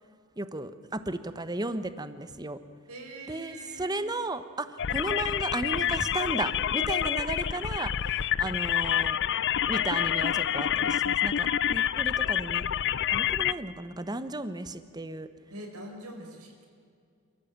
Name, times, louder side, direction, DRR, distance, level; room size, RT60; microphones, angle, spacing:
voice 1, 0.4-2.6 3.3-9.2 9.7-12.6 13.1-15.3, right 2 dB, 20° right, 12 dB, 1.1 m, -34 dB
voice 2, 2.9-3.9 15.5-16.7, right 1 dB, 80° right, 2 dB, 5.4 m, -43 dB
sound 1, 4.8-13.5, left 10 dB, 55° left, 0.5 m, -27 dB
29.0 x 14.5 x 8.8 m, 2.3 s
head